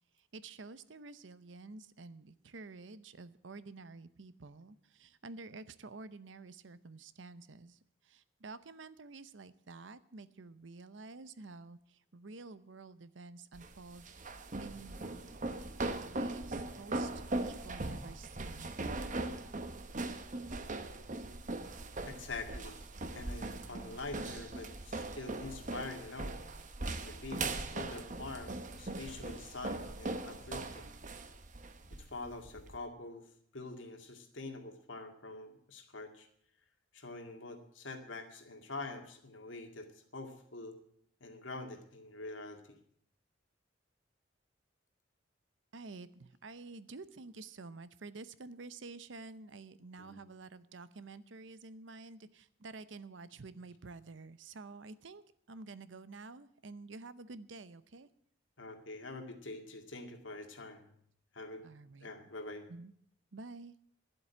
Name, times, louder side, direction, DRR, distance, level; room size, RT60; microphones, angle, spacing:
voice 1, 0.2-15.0 15.8-18.7 45.7-55.2 55.5-58.1 61.6-62.1 62.7-62.9 63.3-63.7, right 3 dB, 70° right, 15 dB, 0.7 m, -50 dB
sound 1, 13.5-32.8, right 2 dB, 40° right, 1.0 m, -40 dB
voice 2, 22.0-22.9 23.1-26.4 27.0-30.9 32.0-33.2 33.5-36.3 36.9-40.8 41.2-42.8 50.0-50.2 58.6-60.9 61.3-61.6 62.0-62.7, left 3 dB, 80° left, 5 dB, 2.1 m, -45 dB
11.5 x 7.8 x 9.5 m, 0.66 s
head